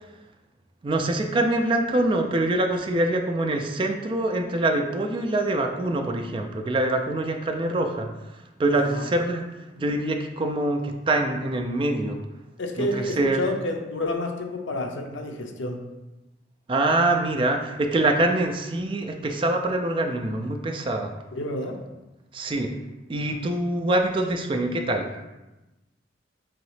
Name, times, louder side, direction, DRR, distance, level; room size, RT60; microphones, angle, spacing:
voice 1, 0.8-8.1 8.6-9.4 9.8-12.2 12.8-13.4 16.7-21.1 22.3-22.7 23.1-25.1, right 2 dB, 30° right, 4 dB, 0.3 m, -24 dB
voice 2, 12.6-15.8 21.3-21.8, left 2 dB, 85° left, 3 dB, 0.6 m, -29 dB
3.7 x 3.1 x 3.2 m, 1.0 s
head